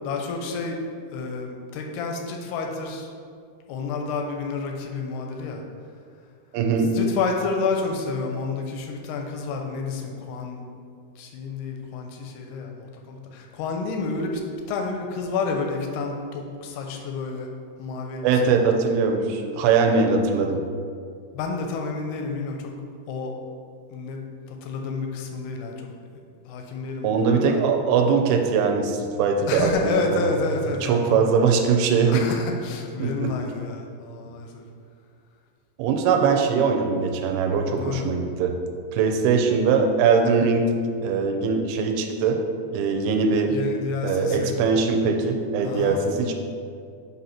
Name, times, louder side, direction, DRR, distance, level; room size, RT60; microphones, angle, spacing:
voice 1, 0.0-0.8 1.1-3.1 3.7-5.6 6.9-10.6 11.2-14.4 14.7-17.5 17.8-18.3 21.3-22.7 23.1-23.3 23.9-24.2 24.5-25.7 26.1-27.6 29.5-31.3 32.1-34.6 37.7-38.2 43.5-44.5 45.6-46.0, left 4 dB, 85° left, 2 dB, 2.7 m, -30 dB
voice 2, 6.5-6.9 18.2-20.6 27.0-30.3 30.8-32.2 33.0-33.3 35.8-38.5 38.9-40.7 41.0-42.4 42.7-43.6 44.0-46.3, right 5 dB, 85° right, 4 dB, 2.5 m, -21 dB
7.8 x 2.7 x 5.7 m, 2.3 s
omnidirectional pair, 4.4 m